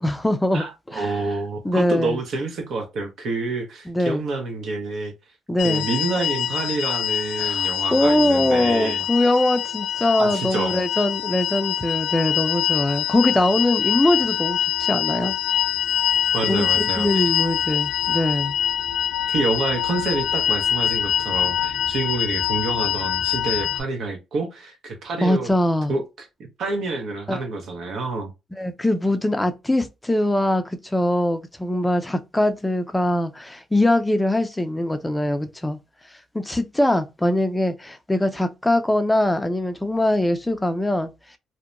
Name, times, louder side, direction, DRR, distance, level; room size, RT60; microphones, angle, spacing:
voice 1, 0.0-1.2 1.6-2.2 3.9-4.2 5.5-5.9 7.4-15.3 16.5-18.5 25.2-25.9 27.3-27.4 28.6-35.8 36.3-41.1, left 1 dB, 10° left, 0.4 m, -22 dB
voice 2, 0.5-5.1 5.6-9.0 10.2-10.7 16.3-17.2 19.3-25.5 25.9-26.3 26.6-28.3, right 3 dB, 65° right, 0.8 m, -28 dB
sound 1, 5.6-23.8, left 10 dB, 85° left, 0.4 m, -24 dB
2.7 x 2.1 x 2.4 m
cardioid pair, 90°, 0 cm